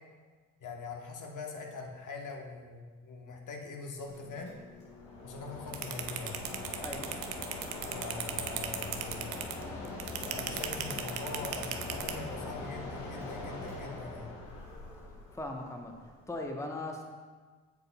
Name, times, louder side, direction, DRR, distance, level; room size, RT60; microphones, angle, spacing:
voice 1, 0.6-4.5 5.2-6.4 7.9-9.5 10.2-14.3, left 4 dB, 55° left, 1 dB, 1.1 m, -42 dB
Mechanisms, 4.0-16.4, left 2 dB, 80° left, 1.5 m, -42 dB
sound 1, 5.7-12.1, right 12 dB, 70° right, 0.6 m, -36 dB
voice 2, 15.3-15.9 16.3-17.0, left 2 dB, 10° left, 2 dB, 1.0 m, -38 dB
8.2 x 6.8 x 2.3 m, 1.5 s
hypercardioid pair, 40°, 37 cm